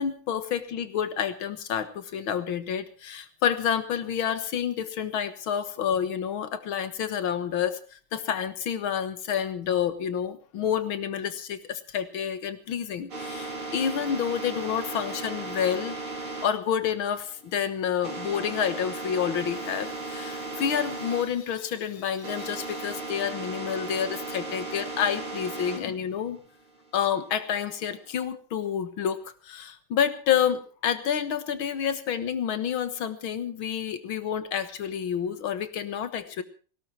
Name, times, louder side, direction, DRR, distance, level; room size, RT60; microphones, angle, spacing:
voice 1, 0.0-16.0 16.4-26.4 26.9-36.4, left 8 dB, 75° left, 12 dB, 2.2 m, -29 dB
sound 1, 13.1-21.3 21.5-25.8 26.3-28.1, right 2 dB, 90° right, 4.6 m, -36 dB
18.5 x 17.0 x 4.5 m, 0.38 s
omnidirectional pair, 2.3 m